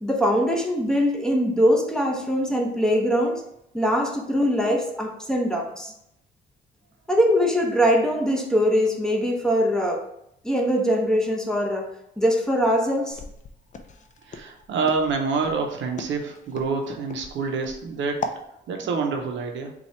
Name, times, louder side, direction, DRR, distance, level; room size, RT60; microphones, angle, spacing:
voice 1, 0.0-3.4 3.7-5.9 7.1-10.0 10.4-11.9 12.2-13.2, equal, 5° left, 1 dB, 0.8 m, -22 dB
Walk footsteps, 13.1-18.4, left 3 dB, 40° left, 0.5 m, -37 dB
voice 2, 14.2-18.2 18.7-19.7, right 4 dB, 70° right, 3 dB, 0.6 m, -27 dB
4.1 x 2.3 x 4.3 m, 0.79 s
cardioid pair, 90°, 20 cm